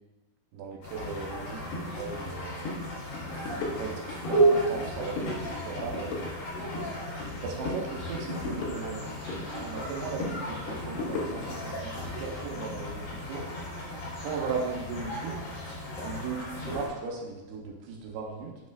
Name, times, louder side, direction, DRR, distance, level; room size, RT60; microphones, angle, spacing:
voice 1, 0.5-3.0 3.8-6.3 7.4-9.1 9.5-13.5 14.2-15.5 16.0-18.5, right 5 dB, 85° right, -1 dB, 2.8 m, -37 dB
sound 1, 0.8-16.9, right 1 dB, 65° left, 1.1 m, -33 dB
sound 2, 1.7-1.9 2.2-2.4 2.6-2.8 3.1-4.4 4.7-5.4 5.6-7.4 7.7-9.4 9.8-11.6, left 3 dB, 85° left, 3.0 m, -36 dB
9.3 x 4.2 x 2.4 m, 1.1 s
omnidirectional pair, 4.6 m